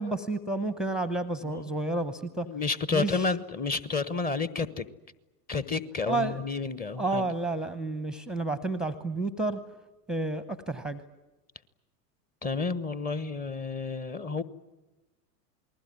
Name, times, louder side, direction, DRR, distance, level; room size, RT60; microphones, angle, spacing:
voice 1, 0.0-2.5 2.9-3.3 6.1-6.4 7.0-9.6 10.1-11.0, right 2 dB, ahead, 13 dB, 0.8 m, -30 dB
voice 2, 2.5-4.9 5.5-7.2 12.4-14.4, left 4 dB, 20° left, 16 dB, 1.1 m, -30 dB
28.5 x 20.0 x 9.7 m, 1.1 s
figure-of-eight pair, 85°, 49 cm